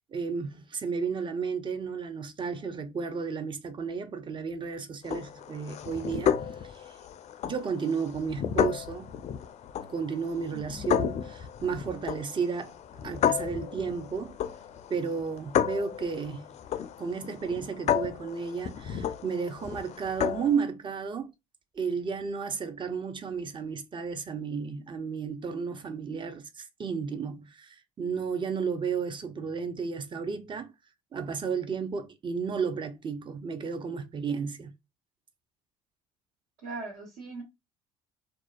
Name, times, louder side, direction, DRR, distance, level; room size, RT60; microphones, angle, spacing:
voice 1, 0.1-6.4 6.6-6.9 7.4-9.1 9.9-12.8 13.0-14.4 14.9-16.5 17.0-21.3 21.7-30.7 31.1-34.7, right 5 dB, 30° right, 0.5 m, -33 dB
sound 1, 5.0-20.6, left 9 dB, 40° left, 0.4 m, -32 dB
voice 2, 10.5-10.9 36.6-37.4, right 3 dB, 65° right, 1.2 m, -40 dB
2.4 x 2.2 x 2.3 m
hypercardioid pair, 60°, 17 cm